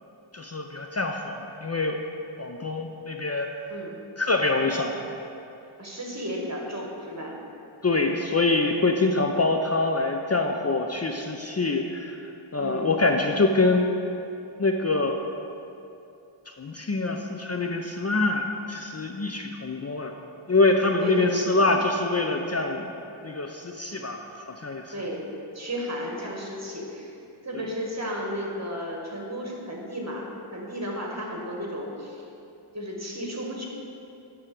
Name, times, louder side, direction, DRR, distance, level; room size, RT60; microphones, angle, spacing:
voice 1, 0.3-2.0 2.4-3.6 4.2-5.2 7.8-12.2 12.5-13.9 14.6-15.2 16.5-20.1 20.5-22.9 23.2-24.9, left 3 dB, 30° left, 3 dB, 0.5 m, -25 dB
voice 2, 5.8-7.3 12.6-12.9 21.0-21.6 24.9-25.3 25.5-32.2 32.7-33.7, equal, 30° right, -1 dB, 1.5 m, -34 dB
9.7 x 3.7 x 5.9 m, 2.7 s
wide cardioid pair, 45°, 50 cm